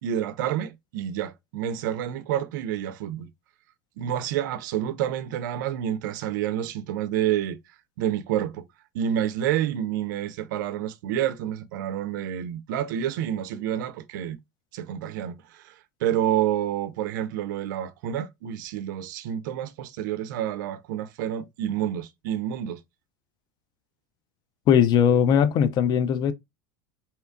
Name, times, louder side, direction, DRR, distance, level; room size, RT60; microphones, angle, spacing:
voice 1, 0.0-3.3 4.0-7.6 8.0-8.6 8.9-14.4 14.7-15.7 16.0-22.8, right 10 dB, 75° right, 0.4 m, -28 dB
voice 2, 24.7-26.3, left 8 dB, 45° left, 0.4 m, -19 dB
2.7 x 2.2 x 2.4 m
hypercardioid pair, 100°, 10 cm